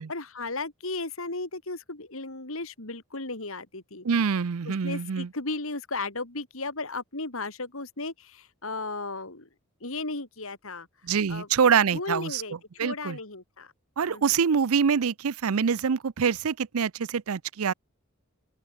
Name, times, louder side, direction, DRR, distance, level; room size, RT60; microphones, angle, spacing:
voice 1, 0.1-4.0 4.6-9.5 9.8-10.9 11.3-11.5 11.9-13.7 14.1-14.2, left 3 dB, 70° left, 3.1 m, -35 dB
voice 2, 4.0-5.3 11.0-12.4 12.8-13.2 14.0-17.7, right 6 dB, 80° right, 0.5 m, -25 dB
open air
head